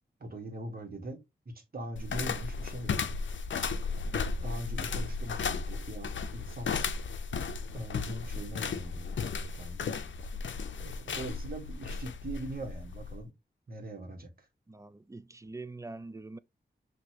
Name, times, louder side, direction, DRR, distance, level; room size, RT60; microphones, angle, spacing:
voice 1, 0.2-1.2 1.4-3.1 4.1-6.7 7.7-9.9 10.8-13.3 13.7-14.5, right 1 dB, 50° right, 1.5 m, -41 dB
sound 1, 2.0-13.2, left 5 dB, 80° left, 0.5 m, -35 dB
voice 2, 14.7-16.4, right 3 dB, 15° right, 0.3 m, -44 dB
6.1 x 2.8 x 2.9 m
wide cardioid pair, 75°, 19 cm